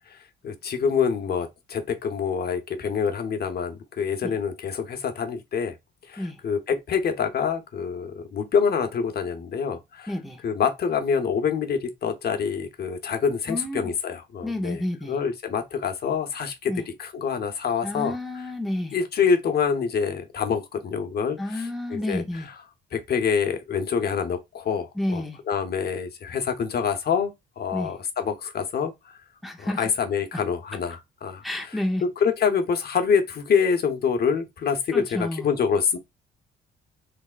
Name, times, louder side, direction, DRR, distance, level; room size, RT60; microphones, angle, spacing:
voice 1, 0.4-5.7 6.1-10.1 10.4-14.8 15.1-16.7 17.0-18.4 18.9-22.4 22.9-28.9 29.8-31.8 32.2-36.0, left 6 dB, 55° left, 0.9 m, -26 dB
voice 2, 10.1-10.4 13.5-13.9 14.4-15.2 16.7-16.8 17.8-19.0 21.4-22.5 25.0-25.4 27.7-27.9 29.4-29.9 31.4-32.0 34.9-35.5, left 1 dB, ahead, 0.8 m, -30 dB
3.5 x 3.3 x 2.5 m
cardioid pair, 90°, 20 cm